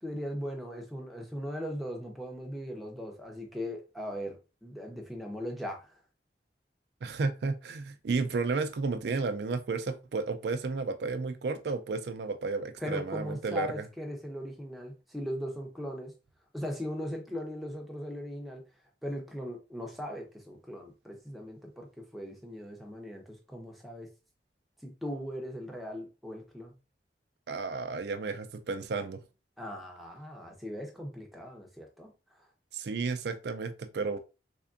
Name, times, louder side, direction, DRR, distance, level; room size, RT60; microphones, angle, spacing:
voice 1, 0.0-6.0 12.8-16.1 16.5-18.6 19.0-24.1 24.8-26.7 29.6-32.1, equal, ahead, 0.7 m, -39 dB
voice 2, 7.0-13.8 27.5-29.2 32.7-34.2, right 4 dB, 75° right, 0.4 m, -32 dB
3.5 x 3.3 x 2.5 m
head